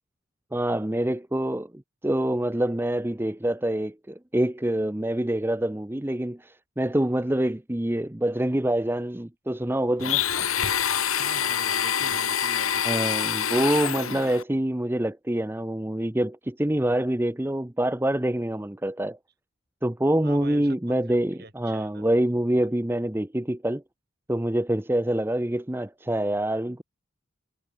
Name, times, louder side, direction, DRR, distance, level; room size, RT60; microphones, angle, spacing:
voice 1, 0.5-10.2 12.8-19.2 19.8-23.8 24.3-26.8, right 1 dB, 10° right, 0.6 m, -26 dB
Domestic sounds home sounds, 10.0-14.4, left 8 dB, 80° left, 3.5 m, -26 dB
voice 2, 11.2-13.3 20.2-22.0, right 2 dB, 45° right, 7.7 m, -44 dB
head